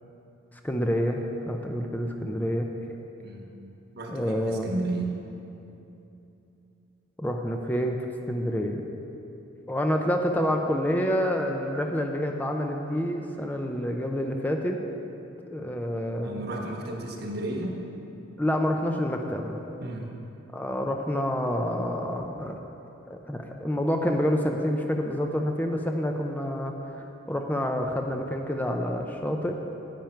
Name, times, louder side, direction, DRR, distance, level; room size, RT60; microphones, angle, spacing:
voice 1, 0.6-2.7 4.1-4.7 7.2-8.9 9.7-14.8 15.5-16.4 18.4-19.6 20.5-22.6 23.1-29.6, equal, 10° left, 2 dB, 0.5 m, -28 dB
voice 2, 3.9-5.2 16.2-17.8 19.8-20.1, right 2 dB, 55° right, 1 dB, 1.3 m, -33 dB
10.5 x 8.9 x 4.5 m, 2.9 s
head